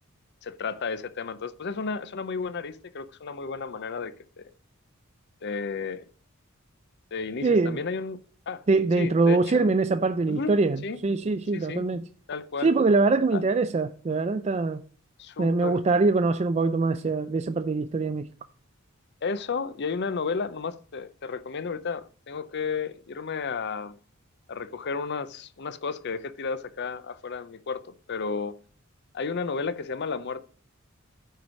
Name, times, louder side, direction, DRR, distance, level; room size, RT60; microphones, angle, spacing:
voice 1, 0.4-4.5 5.4-6.0 7.1-8.2 8.5-8.6 9.0-9.6 10.3-10.5 10.8-11.0 11.5-11.8 12.3-12.7 13.3-13.4 15.2-15.8 19.2-24.0 24.5-28.6 29.1-30.4, left 5 dB, 55° left, 0.6 m, -32 dB
voice 2, 7.4-7.8 8.7-12.1 12.6-14.8 15.4-18.3, right 3 dB, 30° right, 0.4 m, -23 dB
9.3 x 4.7 x 6.2 m
head